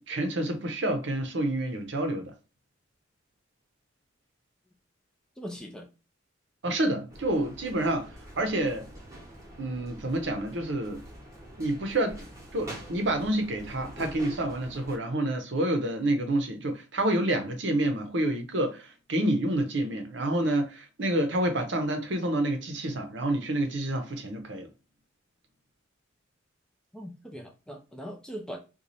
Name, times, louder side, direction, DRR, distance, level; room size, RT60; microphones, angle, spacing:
voice 1, 0.1-2.3 6.6-8.1 8.4-8.9 9.6-11.0 11.6-12.3 12.5-24.7, right 1 dB, 60° right, 0.7 m, -28 dB
voice 2, 5.4-5.9 26.9-28.6, equal, 5° left, 0.4 m, -40 dB
sound 1, 7.1-15.0, right 1 dB, 15° right, 1.0 m, -45 dB
3.0 x 2.3 x 4.0 m
head